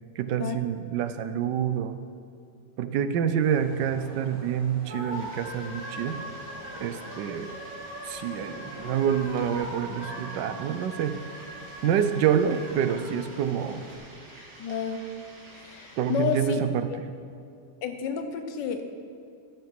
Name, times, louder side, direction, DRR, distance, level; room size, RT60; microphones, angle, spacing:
voice 1, 0.2-2.0 2.8-6.2 6.8-7.6 8.0-11.2 11.8-13.8 16.0-16.9, right 8 dB, 85° right, 10 dB, 1.4 m, -27 dB
sound 1, 3.4-14.0, right 1 dB, 50° right, 3.6 m, -41 dB
sound 2, 5.1-16.5, right 1 dB, 65° right, 2.5 m, -50 dB
Brass instrument, 5.7-12.6 12.9-13.0, equal, 15° right, 3.5 m, -50 dB
voice 2, 14.6-15.0 15.5-16.6 16.9-17.0 17.8-18.9, left 6 dB, 85° left, 7 dB, 1.6 m, -30 dB
12.0 x 9.0 x 5.9 m, 2.4 s
omnidirectional pair, 1.9 m